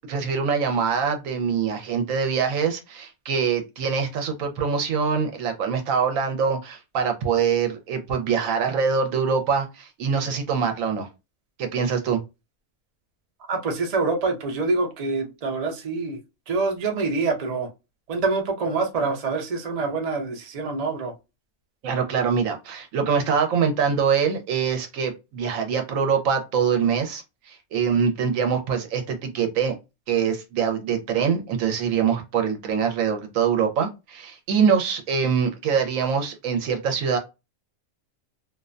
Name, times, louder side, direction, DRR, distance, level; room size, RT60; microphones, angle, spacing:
voice 1, 0.1-11.1 11.6-12.2 21.8-29.7 30.1-37.2, right 6 dB, 75° right, 1.0 m, -24 dB
voice 2, 13.5-16.2 16.5-17.7 18.1-21.1, right 3 dB, 50° right, 0.4 m, -26 dB
2.5 x 2.1 x 2.4 m
omnidirectional pair, 1.5 m